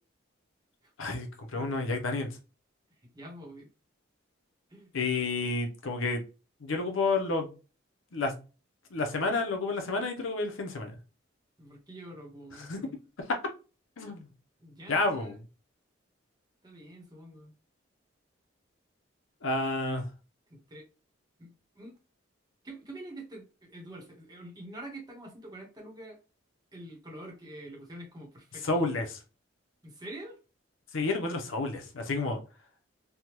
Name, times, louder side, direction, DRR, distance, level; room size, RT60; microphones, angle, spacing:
voice 1, 1.0-2.3 4.9-6.2 6.6-7.5 8.1-8.3 8.9-10.9 12.6-12.8 14.0-14.3 14.9-15.4 19.4-20.1 28.6-29.2 30.9-32.4, left 3 dB, 80° left, 0.7 m, -30 dB
voice 2, 3.0-3.7 4.7-4.9 11.6-13.0 14.6-15.4 16.6-17.5 19.4-20.0 20.5-20.9 21.4-22.0 22.6-26.2 26.7-28.9 29.8-30.4, right 1 dB, 20° right, 0.9 m, -46 dB
3.4 x 2.2 x 3.0 m
head